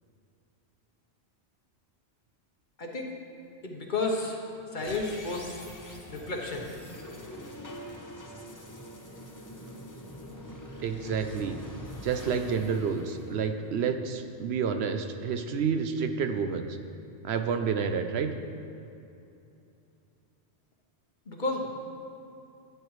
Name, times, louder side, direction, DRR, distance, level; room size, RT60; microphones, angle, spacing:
voice 1, 2.8-3.1 3.6-5.7 6.1-6.7 21.3-21.7, left 3 dB, 50° left, 1 dB, 1.1 m, -32 dB
sound 1, 4.7-14.0, equal, 20° left, 0.8 m, -44 dB
voice 2, 10.8-11.6 12.0-16.7 17.2-18.3, right 6 dB, 75° right, 7 dB, 0.9 m, -29 dB
12.5 x 8.5 x 3.2 m, 2.7 s
omnidirectional pair, 1.1 m